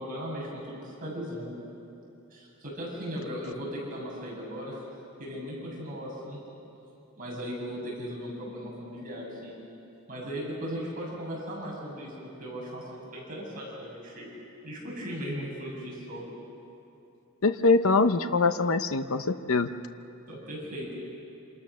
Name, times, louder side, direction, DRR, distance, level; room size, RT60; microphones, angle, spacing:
voice 1, 0.0-1.5 2.3-4.8 5.2-6.4 7.2-9.5 10.1-12.1 12.4-14.3 14.6-16.3 20.3-20.9, equal, 40° right, -4 dB, 7.7 m, -37 dB
voice 2, 17.4-19.7, left 3 dB, 65° left, 9 dB, 0.8 m, -23 dB
27.5 x 27.5 x 6.4 m, 2.9 s
head